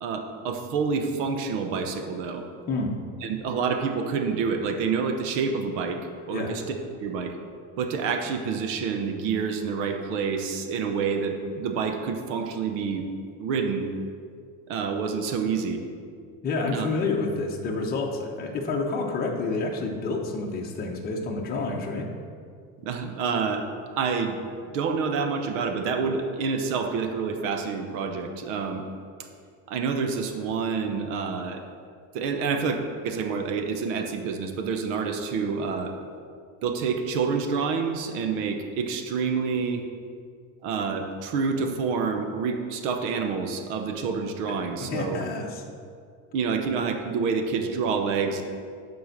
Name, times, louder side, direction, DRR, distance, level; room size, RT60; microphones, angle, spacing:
voice 1, 0.0-2.4 3.2-6.0 6.3-6.6 7.0-7.3 7.8-13.1 13.4-13.9 14.7-15.8 16.7-16.9 22.8-23.7 24.0-24.4 24.7-28.8 29.7-31.6 32.1-35.9 36.6-39.8 40.6-45.2 46.3-48.4, right 5 dB, 80° right, 5 dB, 1.1 m, -28 dB
voice 2, 16.4-22.1 44.8-45.6, left 3 dB, 25° left, -1 dB, 1.0 m, -29 dB
9.6 x 4.6 x 6.5 m, 2.2 s
cardioid pair, 150°, 36 cm